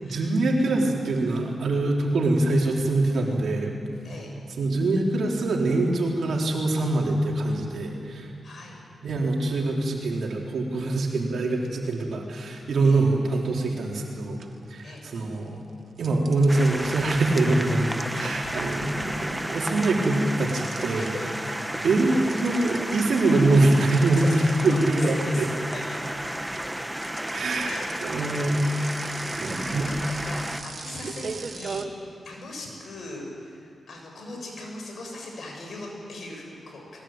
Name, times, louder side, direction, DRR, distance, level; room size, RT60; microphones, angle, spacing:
voice 1, 0.0-3.7 4.6-8.3 9.0-14.4 14.7-15.6 16.0-21.1 21.8-22.2 22.4-24.3 24.6-25.5 27.3-27.7 28.0-28.6 29.4-29.9, right 2 dB, 75° right, -1 dB, 4.0 m, -24 dB
voice 2, 8.4-8.8 12.8-13.0 14.8-15.1 18.1-18.4 21.0-21.3 22.1-22.2 24.1-26.0 27.7-27.9 29.2-30.0 30.2-31.9 32.2-37.0, left 2 dB, 65° left, 0 dB, 7.2 m, -40 dB
sound 1, 13.8-14.1 14.4-15.4 16.0-21.4 21.7-31.9, right 5 dB, 60° right, 1.7 m, -40 dB
sound 2, 16.5-30.6, right 1 dB, 10° right, 1.3 m, -32 dB
21.5 x 20.0 x 9.0 m, 2.5 s
cardioid pair, 60°, 0 cm